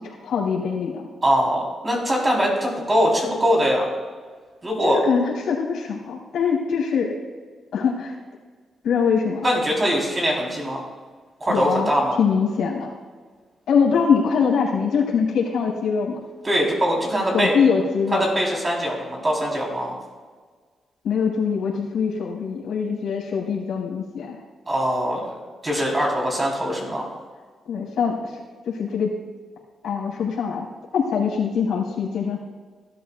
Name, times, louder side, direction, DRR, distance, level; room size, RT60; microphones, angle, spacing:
voice 1, 0.0-1.1 4.8-7.1 7.7-8.1 8.8-9.5 11.5-11.9 12.2-12.9 13.7-16.2 17.3-18.3 21.0-24.4 27.7-28.3 28.7-29.1 29.8-30.7 30.9-32.4, left 6 dB, 85° left, -4 dB, 4.2 m, -23 dB
voice 2, 1.2-3.9 4.6-5.0 9.4-10.8 11.4-12.2 16.4-17.5 18.2-20.0 24.7-27.1, equal, 25° right, -2 dB, 4.0 m, -22 dB
18.0 x 13.0 x 2.5 m, 1.5 s
cardioid pair, 120°, 0 cm